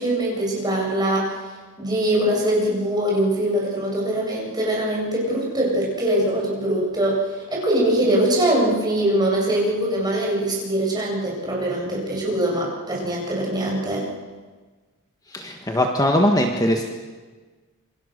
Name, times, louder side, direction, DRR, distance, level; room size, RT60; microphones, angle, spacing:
voice 1, 0.0-1.3 1.8-14.0, right 1 dB, 20° right, -3 dB, 7.7 m, -22 dB
voice 2, 15.3-16.8, left 1 dB, 15° left, 3 dB, 1.5 m, -20 dB
27.5 x 24.5 x 6.7 m, 1.4 s
head